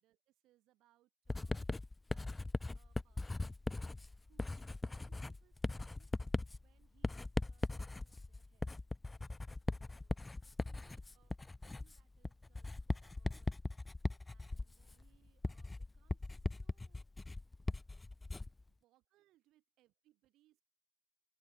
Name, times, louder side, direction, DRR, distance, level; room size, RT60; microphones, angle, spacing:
voice 1, 0.0-1.6 2.1-3.5 4.2-6.2 6.6-8.8 9.8-10.3 10.6-13.5 14.3-17.0 18.7-20.6, right 15 dB, 70° right, 7.1 m, -75 dB
Writing, 1.3-18.6, left 2 dB, 15° left, 0.3 m, -40 dB
open air
supercardioid pair, 80°, 0 cm